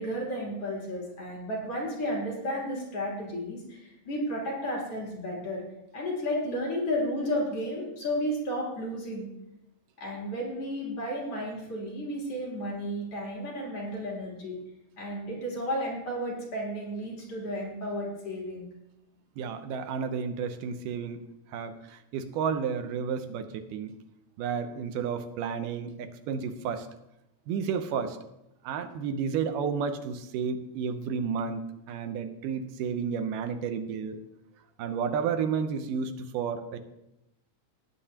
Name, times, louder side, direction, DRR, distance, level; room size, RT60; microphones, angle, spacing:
voice 1, 0.0-5.6 5.9-9.3 10.0-14.6 15.0-18.7, equal, 45° left, -4 dB, 4.1 m, -33 dB
voice 2, 19.4-21.2 21.5-24.0 24.4-26.9 27.5-28.2 28.6-34.2 34.8-36.8, right 6 dB, 85° right, 8 dB, 2.5 m, -31 dB
19.0 x 8.8 x 2.9 m, 0.88 s
omnidirectional pair, 3.7 m